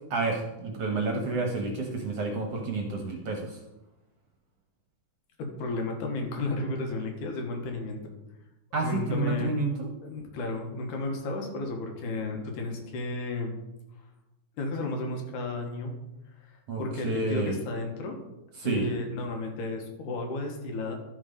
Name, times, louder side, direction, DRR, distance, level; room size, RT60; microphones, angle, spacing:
voice 1, 0.1-3.6 8.7-9.9 16.7-17.6 18.6-18.9, right 3 dB, 60° right, 2 dB, 1.8 m, -30 dB
voice 2, 5.4-8.0 8.8-9.6 10.0-13.6 14.6-16.0 16.4-18.2 18.6-21.0, left 2 dB, 70° left, 3 dB, 2.8 m, -33 dB
12.5 x 6.3 x 5.3 m, 0.98 s
omnidirectional pair, 3.8 m